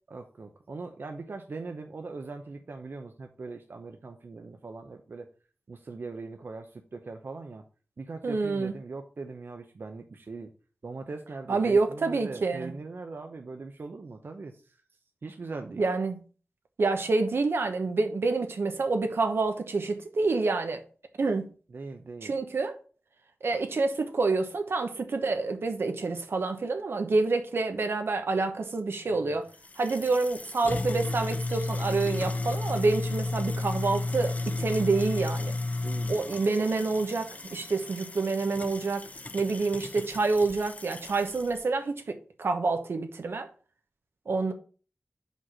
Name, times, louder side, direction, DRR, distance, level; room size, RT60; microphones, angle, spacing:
voice 1, 0.1-5.3 5.7-7.6 8.0-10.5 10.8-14.8 15.2-15.8 21.7-22.3 29.1-29.4 35.8-36.7, right 3 dB, 65° right, 0.7 m, -41 dB
voice 2, 8.2-8.7 11.5-12.7 15.8-16.1 16.8-20.8 21.2-21.5 22.2-22.7 23.4-29.5 29.8-35.6 36.1-39.0 39.3-42.0 42.4-43.5 44.3-44.5, right 3 dB, 85° right, 1.0 m, -27 dB
sound 1, 29.5-41.6, left 2 dB, 40° left, 0.6 m, -33 dB
5.2 x 4.2 x 6.0 m
wide cardioid pair, 85°, 4 cm